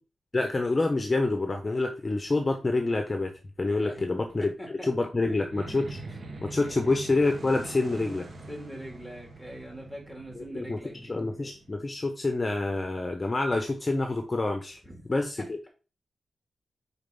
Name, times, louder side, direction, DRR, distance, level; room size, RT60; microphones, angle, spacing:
voice 1, 0.3-3.3 3.6-6.0 6.4-8.3 10.3-14.8 15.1-15.6, left 2 dB, 30° left, 4 dB, 0.9 m, -27 dB
voice 2, 4.4-4.9 5.2-5.4 6.6-6.8 8.5-11.1 14.8-15.0, equal, 5° right, 0 dB, 2.9 m, -42 dB
sound 1, 5.5-12.1, right 2 dB, 55° right, 1.1 m, -44 dB
5.1 x 4.4 x 5.4 m, 0.34 s
wide cardioid pair, 95°, 0 cm